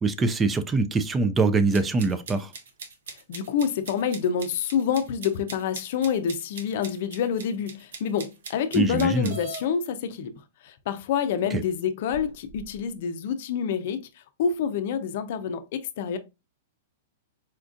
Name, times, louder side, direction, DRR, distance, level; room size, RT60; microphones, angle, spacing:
voice 1, 0.0-2.5 8.7-9.3 11.5-11.6, right 3 dB, 15° right, 0.4 m, -23 dB
sound 1, 1.7-9.6, right 5 dB, 80° right, 0.9 m, -42 dB
voice 2, 3.3-14.1 14.4-16.2, left 7 dB, 60° left, 0.5 m, -27 dB
sound 2, 9.3-9.7 10.7-10.8 11.4-11.5 12.1-12.8, left 1 dB, 50° right, 1.1 m, -41 dB
4.4 x 2.4 x 2.4 m
hypercardioid pair, 140°, 0 cm